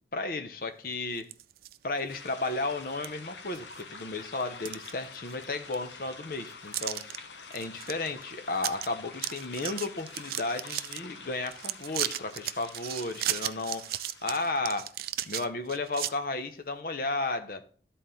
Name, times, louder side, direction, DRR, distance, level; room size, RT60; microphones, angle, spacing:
voice 1, 0.1-1.3 1.8-7.0 7.5-14.9 15.3-17.6, left 2 dB, 50° left, 8 dB, 0.7 m, -33 dB
sound 1, 1.2-1.8 2.2-2.3 3.0-3.1 3.5-4.0 4.4-5.4 5.7-5.8 6.7-7.2 7.5-7.9 8.2-8.3 8.6-8.9 9.1-11.0 11.5-16.1, right 13 dB, 55° right, 0.3 m, -35 dB
sound 2, 2.1-14.9, left 4 dB, 80° left, 0.9 m, -47 dB
12.5 x 4.2 x 3.8 m, 0.42 s
head